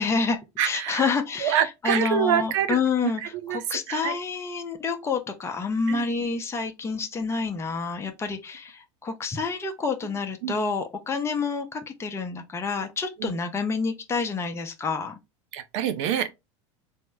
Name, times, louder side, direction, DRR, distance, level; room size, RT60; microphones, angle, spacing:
voice 1, 0.0-1.6 1.8-3.2 3.5-15.2, left 4 dB, 15° left, 0.6 m, -28 dB
voice 2, 0.6-1.1 1.4-4.2 5.9-6.1 10.4-10.6 13.2-13.3 15.5-16.3, right 9 dB, 70° right, 0.6 m, -26 dB
3.5 x 2.0 x 3.3 m
hypercardioid pair, 100°, 16 cm